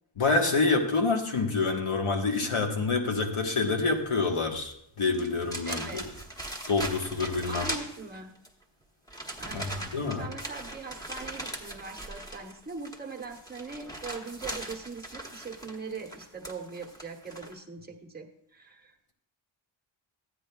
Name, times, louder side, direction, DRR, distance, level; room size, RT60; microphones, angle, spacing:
voice 1, 0.2-6.0 6.7-7.7 9.5-10.3, left 3 dB, 90° left, 2 dB, 1.4 m, -27 dB
sound 1, 4.6-4.7 5.1-8.5 9.1-17.5, right 1 dB, 5° left, 1.1 m, -40 dB
voice 2, 5.7-6.1 7.5-8.4 9.4-19.1, right 4 dB, 20° right, 1 dB, 1.0 m, -41 dB
14.0 x 9.7 x 2.3 m, 0.74 s
wide cardioid pair, 120°, 49 cm